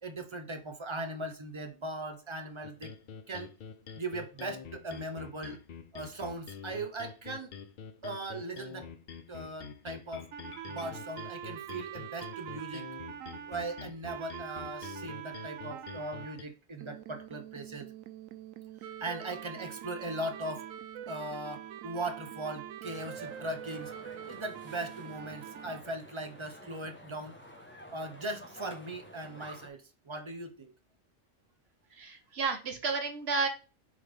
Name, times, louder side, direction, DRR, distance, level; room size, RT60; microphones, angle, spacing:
voice 1, 0.0-2.9 3.3-3.5 4.0-5.6 5.9-7.5 8.0-8.9 9.3-10.3 10.7-12.9 13.5-17.9 19.0-20.7 21.1-23.9 24.3-27.4 27.9-30.7, right 2 dB, 30° right, 0.6 m, -39 dB
sound 1, 2.6-16.4, left 6 dB, 55° left, 0.6 m, -47 dB
sound 2, 10.3-16.4 16.8-25.8, right 10 dB, 85° right, 1.0 m, -44 dB
sound 3, 22.8-29.7, left 1 dB, 10° left, 1.0 m, -51 dB
voice 2, 31.9-33.5, right 4 dB, 55° right, 1.3 m, -32 dB
7.4 x 3.7 x 3.4 m
omnidirectional pair, 1.3 m